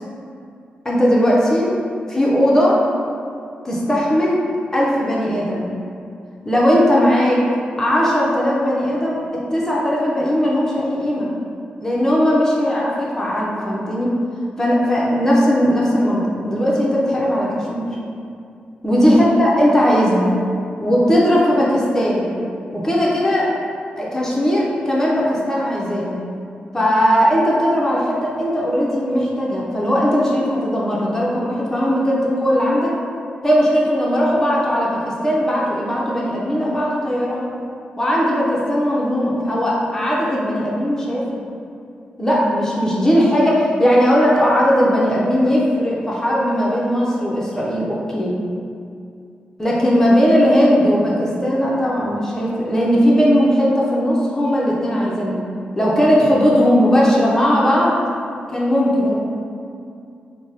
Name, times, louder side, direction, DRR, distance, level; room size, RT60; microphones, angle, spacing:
voice 1, 0.8-2.8 3.6-4.4 4.7-5.7 6.4-7.4 7.8-9.2 9.5-11.3 11.8-14.1 14.6-17.9 18.8-20.3 20.8-22.3 22.7-23.5 24.0-26.2 26.7-32.9 33.4-37.4 38.0-41.4 42.2-48.3 49.6-55.4 55.8-58.0 58.5-59.2, equal, 15° left, -5 dB, 0.5 m, -18 dB
3.8 x 2.0 x 3.7 m, 2.4 s
wide cardioid pair, 130°, 3 cm